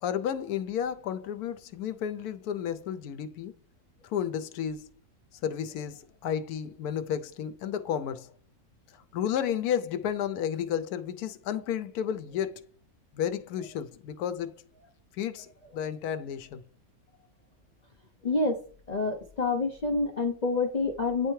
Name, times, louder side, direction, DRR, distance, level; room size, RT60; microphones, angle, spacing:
voice 1, 0.0-3.5 4.0-4.9 5.4-8.3 9.1-12.7 13.1-14.5 15.2-16.6, left 9 dB, 85° left, 1.1 m, -32 dB
voice 2, 18.2-18.6 18.9-21.3, left 3 dB, 55° left, 0.4 m, -27 dB
9.3 x 3.2 x 3.1 m
omnidirectional pair, 1.6 m